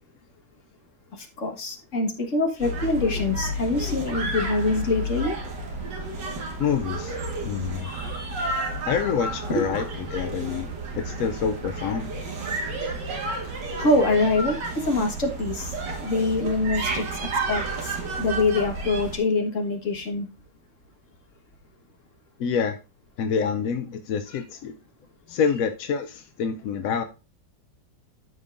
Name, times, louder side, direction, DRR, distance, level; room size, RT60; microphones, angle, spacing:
voice 1, 1.2-5.3 7.8-8.5 9.5-9.6 13.8-15.7 16.0-20.3 24.3-24.4, left 2 dB, 45° left, 1.9 m, -25 dB
sound 1, 2.6-19.2, right 2 dB, 70° right, 2.3 m, -31 dB
voice 2, 6.6-7.2 7.4-7.9 8.9-9.8 10.1-12.1 22.4-22.8 23.2-24.8 25.3-27.0, left 6 dB, 65° left, 0.9 m, -27 dB
13.0 x 5.2 x 2.6 m
omnidirectional pair, 1.9 m